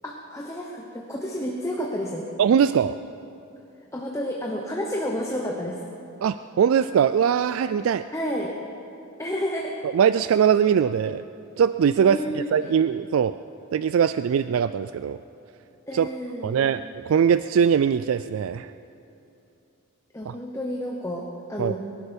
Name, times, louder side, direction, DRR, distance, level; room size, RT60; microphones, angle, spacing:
voice 1, 0.0-2.3 3.9-5.8 8.1-8.5 9.2-9.8 12.1-12.8 15.9-16.7 20.1-21.8, equal, 15° left, -1 dB, 1.0 m, -30 dB
voice 2, 2.4-2.9 6.2-8.0 9.8-11.2 11.6-12.2 12.5-13.3 13.7-15.2 15.9-16.1 16.4-18.7 20.3-20.4 21.6-21.7, right 7 dB, 70° right, 13 dB, 0.3 m, -21 dB
22.0 x 11.0 x 5.3 m, 2.7 s
head